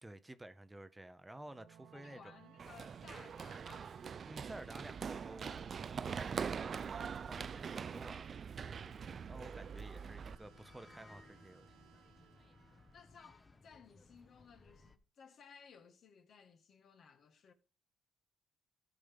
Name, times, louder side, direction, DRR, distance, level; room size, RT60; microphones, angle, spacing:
voice 1, 0.0-2.3 2.6-2.7 4.3-8.4 9.3-11.8, right 1 dB, 15° right, 0.7 m, -52 dB
sound 1, 1.3-13.6, right 9 dB, 85° right, 1.0 m, -63 dB
voice 2, 1.9-3.9 12.9-17.5, left 6 dB, 60° left, 1.5 m, -59 dB
Run, 2.6-10.4, right 6 dB, 50° right, 0.4 m, -43 dB
sound 2, 8.6-15.0, left 3 dB, 25° left, 1.0 m, -62 dB
14.5 x 5.2 x 5.2 m
cardioid pair, 90°, 0 cm